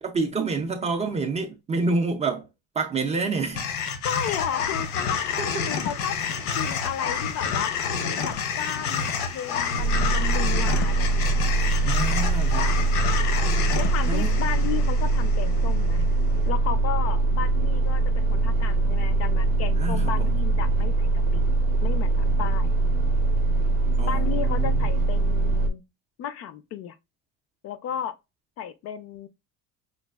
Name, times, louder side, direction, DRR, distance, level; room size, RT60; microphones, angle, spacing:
voice 1, 0.0-2.5 2.7-3.7 5.4-5.5 11.8-12.7 14.0-14.4 19.8-20.4 24.0-24.9, right 3 dB, 20° right, 0.3 m, -28 dB
sound 1, 3.5-15.9, left 6 dB, 80° left, 0.8 m, -29 dB
voice 2, 4.0-6.2 6.5-7.7 8.0-11.4 13.7-16.0 16.5-21.4 21.8-22.8 24.0-25.8 26.2-26.9 27.6-28.1 28.6-29.3, left 9 dB, 45° left, 0.4 m, -34 dB
sound 2, 9.8-25.7, right 3 dB, 90° right, 0.6 m, -22 dB
5.0 x 2.3 x 2.2 m
cardioid pair, 145°, 34 cm